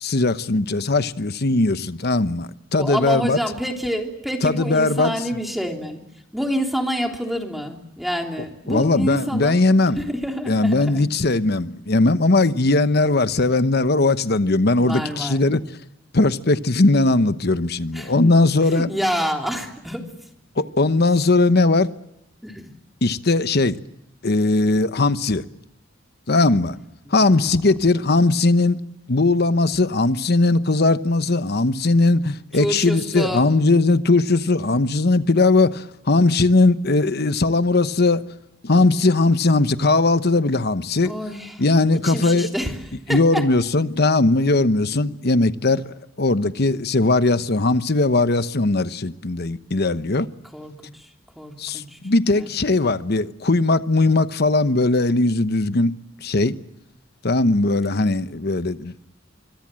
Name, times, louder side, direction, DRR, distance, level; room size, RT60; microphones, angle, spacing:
voice 1, 0.0-3.4 4.4-5.1 8.7-10.0 10.5-15.6 16.1-18.9 20.6-21.9 23.0-23.8 24.2-25.4 26.3-26.8 27.1-28.8 29.1-38.2 38.6-41.1 41.6-42.5 43.1-45.8 46.2-50.3 51.6-56.6 57.2-58.9, left 2 dB, 55° left, 1.0 m, -19 dB
voice 2, 2.8-6.0 6.3-9.6 10.0-11.1 14.8-15.5 17.9-18.1 18.6-20.1 22.4-22.7 27.2-27.6 32.5-33.5 41.0-41.6 42.0-42.8 43.1-43.5 50.5-51.1 51.3-52.0 52.3-52.5 52.8-53.0, equal, ahead, 3.2 m, -27 dB
25.5 x 25.0 x 7.6 m
head